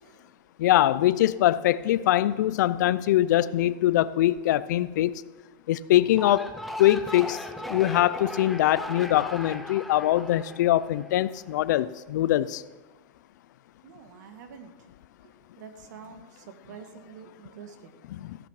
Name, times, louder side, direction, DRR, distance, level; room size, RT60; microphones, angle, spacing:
voice 1, 0.0-0.4 13.8-14.9 15.2-18.0, right 7 dB, 75° right, 1.6 m, -47 dB
voice 2, 0.6-5.1 5.7-6.5 6.8-12.6 18.1-18.4, left 14 dB, 75° left, 0.5 m, -23 dB
sound 1, 6.0-11.4, left 1 dB, ahead, 0.7 m, -38 dB
15.0 x 8.4 x 4.8 m
supercardioid pair, 150°, 10 cm